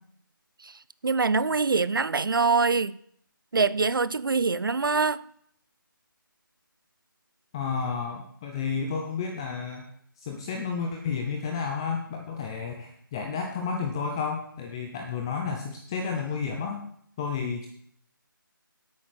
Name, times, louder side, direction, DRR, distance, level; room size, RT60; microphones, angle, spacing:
voice 1, 1.0-3.0 3.5-5.2, right 4 dB, 70° right, 0.6 m, -24 dB
voice 2, 7.5-9.9 10.2-16.8 17.2-17.7, left 5 dB, 10° left, 0.6 m, -31 dB
10.0 x 8.4 x 6.5 m
figure-of-eight pair, 165°, 12 cm